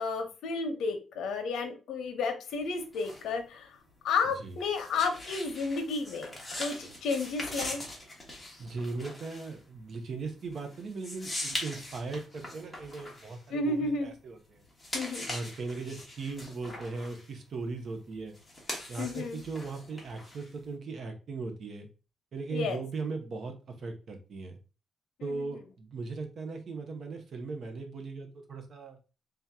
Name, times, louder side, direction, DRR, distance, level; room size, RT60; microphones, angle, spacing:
voice 1, 0.0-3.7 4.0-7.8 13.5-14.1 14.9-15.3 19.0-19.4 22.5-22.8 25.4-25.5, left 4 dB, 80° left, 6 dB, 0.9 m, -32 dB
sound 1, 2.5-14.2 14.6-20.7, left 1 dB, 5° left, 1.2 m, -42 dB
voice 2, 8.6-14.6 15.3-18.3 18.9-21.9 22.3-24.6 25.2-29.0, right 3 dB, 45° right, 5 dB, 0.8 m, -38 dB
3.5 x 2.8 x 3.5 m, 0.33 s
cardioid pair, 165°, 0 cm